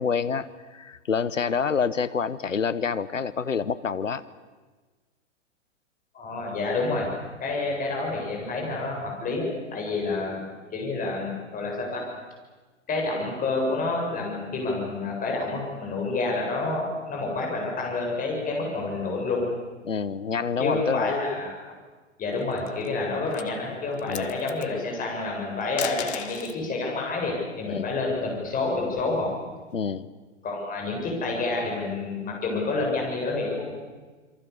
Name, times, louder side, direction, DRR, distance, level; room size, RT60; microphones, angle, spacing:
voice 1, 0.0-4.2 19.8-21.1 24.1-24.3 27.6-27.9 29.7-30.1, left 6 dB, 85° left, 16 dB, 1.0 m, -27 dB
voice 2, 6.1-10.4 10.7-12.0 12.9-19.4 20.6-21.5 22.2-29.3 30.4-33.8, left 3 dB, 20° left, -1 dB, 7.8 m, -28 dB
sound 1, 22.4-22.9 23.3-23.5 23.9-24.7 25.6-26.6 28.1-29.3, left 10 dB, 60° left, 1.6 m, -36 dB
28.0 x 23.5 x 7.1 m, 1.3 s
figure-of-eight pair, 105°, 37 cm